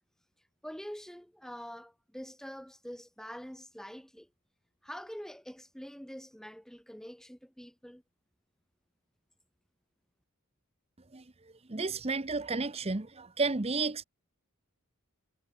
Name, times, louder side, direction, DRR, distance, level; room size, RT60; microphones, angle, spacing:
voice 1, 0.6-4.3 4.8-8.0, equal, ahead, 1.4 m, -45 dB
voice 2, 11.7-14.0, right 3 dB, 30° right, 0.9 m, -32 dB
head